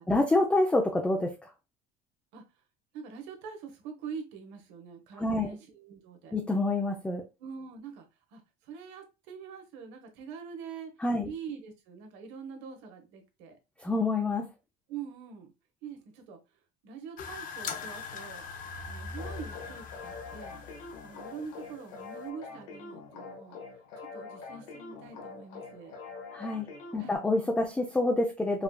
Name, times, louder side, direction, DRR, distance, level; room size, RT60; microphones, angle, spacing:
voice 1, 0.1-1.5 5.2-5.5 6.3-7.2 11.0-11.3 13.8-14.5 26.3-28.6, left 2 dB, 5° left, 0.4 m, -27 dB
voice 2, 2.9-6.3 7.4-8.1 8.3-10.9 11.2-13.6 14.9-15.5 15.8-16.4 16.8-18.5 18.8-20.6 21.0-23.6 24.0-26.0 27.0-27.2, right 6 dB, 80° right, 1.1 m, -44 dB
sound 1, 17.2-22.3, left 5 dB, 45° left, 0.6 m, -41 dB
sound 2, 19.2-27.2, left 4 dB, 85° left, 1.4 m, -45 dB
4.7 x 2.3 x 2.2 m
cardioid pair, 125°, 19 cm